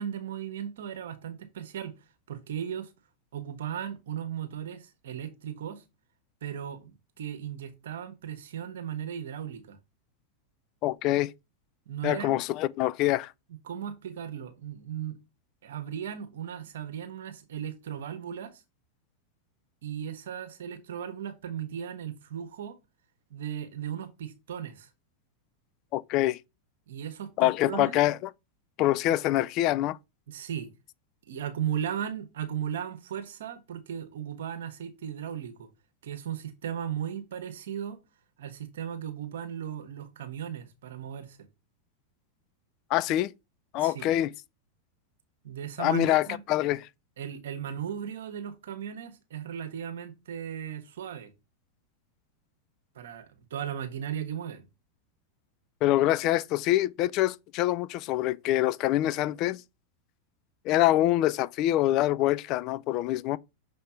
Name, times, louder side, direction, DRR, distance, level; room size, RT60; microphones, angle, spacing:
voice 1, 0.0-1.9 2.3-2.9 3.3-5.8 6.4-9.8 11.9-12.4 13.6-15.2 15.6-18.6 19.8-22.8 23.3-24.9 26.9-28.0 29.1-29.2 30.3-30.7 31.3-35.7 36.0-38.0 38.4-41.4 43.8-44.1 45.4-46.4 47.2-51.3 52.9-54.7, right 9 dB, 75° right, 1.2 m, -36 dB
voice 2, 10.8-11.3 12.0-13.3 25.9-26.4 27.4-28.2 28.8-30.0 42.9-43.3 43.7-44.3 45.8-46.8 55.8-59.6 60.6-63.4, left 14 dB, 45° left, 0.4 m, -25 dB
6.4 x 3.4 x 4.5 m
hypercardioid pair, 110°, 0 cm